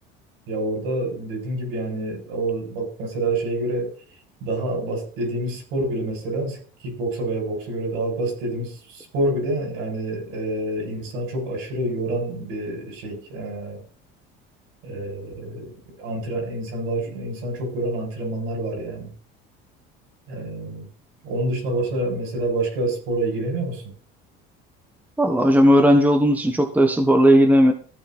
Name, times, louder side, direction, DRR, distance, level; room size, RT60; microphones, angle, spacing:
voice 1, 0.5-3.9 4.4-6.6 6.8-13.8 14.8-19.1 20.3-20.9 21.2-23.8, right 1 dB, 75° right, 2 dB, 7.6 m, -27 dB
voice 2, 25.2-27.7, equal, 5° right, 6 dB, 1.4 m, -16 dB
14.5 x 9.1 x 4.5 m, 0.43 s
cardioid pair, 120°, 21 cm